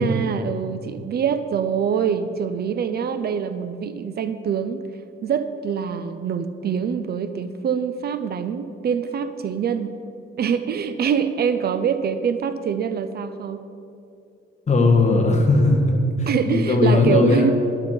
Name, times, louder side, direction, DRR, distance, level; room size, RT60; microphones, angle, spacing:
voice 1, 0.0-4.8 5.2-9.9 10.4-13.6 16.3-17.5, right 7 dB, 50° right, 11 dB, 0.6 m, -24 dB
voice 2, 14.7-15.8 16.2-17.5, left 3 dB, 35° left, 1 dB, 1.6 m, -18 dB
12.0 x 11.5 x 4.5 m, 2.6 s
cardioid pair, 135°, 20 cm